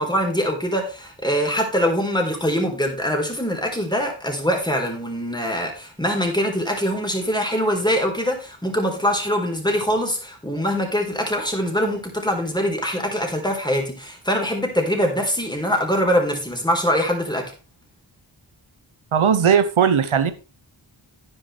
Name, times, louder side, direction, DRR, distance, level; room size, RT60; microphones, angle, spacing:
voice 1, 0.0-17.5, equal, 10° left, 2 dB, 3.9 m, -23 dB
voice 2, 19.1-20.3, right 7 dB, 90° right, 11 dB, 1.0 m, -17 dB
10.5 x 9.8 x 3.3 m, 0.33 s
wide cardioid pair, 55°, 48 cm